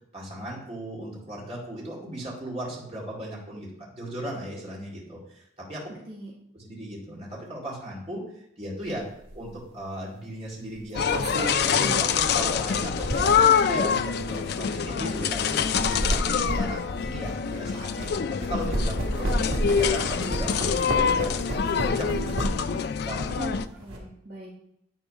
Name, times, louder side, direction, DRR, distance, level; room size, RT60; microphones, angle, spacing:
voice 1, 0.1-5.9 6.5-9.1 9.3-16.8 17.0-21.3 21.6-22.1 23.0-23.4, right 1 dB, 30° right, -5 dB, 2.3 m, -37 dB
voice 2, 5.9-6.3 22.1-22.2 22.6-22.8 23.3-24.6, right 2 dB, 50° right, -5 dB, 1.9 m, -40 dB
sound 1, 9.2-9.4 10.7-13.6 14.3-14.4 15.5-18.1 18.4-22.8 23.1-24.0, right 1 dB, 85° right, 1.9 m, -31 dB
sound 2, 10.9-23.6, left 7 dB, 50° left, 0.3 m, -25 dB
10.5 x 3.9 x 5.2 m, 0.74 s
head